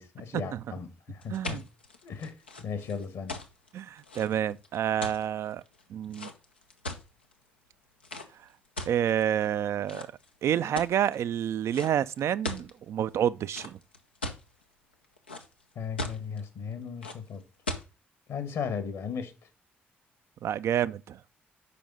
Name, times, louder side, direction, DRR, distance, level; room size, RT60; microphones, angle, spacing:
voice 1, 0.0-1.7 2.0-3.4 15.7-17.4 18.3-19.3, left 6 dB, 60° left, 1.4 m, -36 dB
sound 1, 1.2-7.3 8.0-8.3 8.8-9.5 9.9-10.3 10.7-11.1 11.7-11.9 12.2-12.7 13.5-14.4 14.9-15.6 16.0-16.4 17.0-17.2 17.7-17.9, left 2 dB, 90° left, 0.6 m, -38 dB
voice 2, 1.3-1.6 3.7-5.6 5.9-6.3 8.8-10.1 10.4-13.8 20.4-21.2, right 10 dB, 55° right, 0.4 m, -28 dB
6.8 x 5.3 x 5.1 m
figure-of-eight pair, 40°, 6 cm